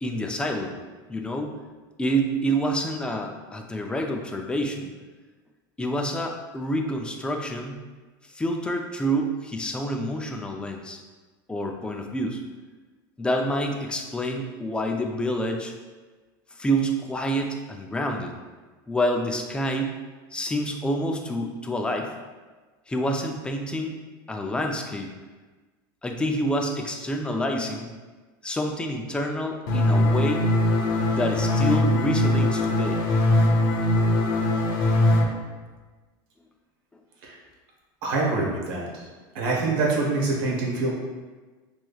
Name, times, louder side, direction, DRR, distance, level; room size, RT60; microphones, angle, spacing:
voice 1, 0.0-0.8 1.1-1.5 2.0-4.9 5.8-7.8 8.3-11.0 11.5-12.4 13.2-15.7 16.6-18.3 18.9-20.0 20.3-22.1 22.9-24.0 24.3-25.1 26.0-27.9 28.4-30.4 31.1-33.0, equal, 10° left, 2 dB, 0.4 m, -27 dB
sound 1, 29.7-35.2, left 1 dB, 65° left, 0.7 m, -21 dB
voice 2, 38.0-39.1 39.3-40.9, right 3 dB, 75° right, -2 dB, 1.2 m, -25 dB
5.3 x 3.1 x 2.3 m, 1.3 s
supercardioid pair, 125°, 12 cm